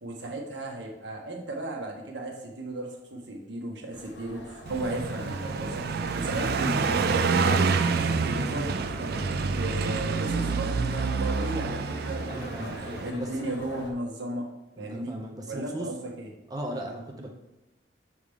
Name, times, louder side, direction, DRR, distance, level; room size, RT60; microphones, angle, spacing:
voice 1, 0.0-5.9 6.1-9.2 9.4-12.7 13.0-14.5 14.8-15.2 15.5-16.3, right 1 dB, 80° right, 1 dB, 1.2 m, -35 dB
sound 1, 3.9-13.9, left 2 dB, 75° left, 1.1 m, -44 dB
Car passing by, 4.7-13.1, right 4 dB, 60° right, 0.4 m, -27 dB
voice 2, 12.3-13.5 14.8-15.9 16.5-17.3, right 1 dB, 20° right, 0 dB, 0.6 m, -38 dB
6.5 x 5.0 x 3.6 m, 0.98 s
head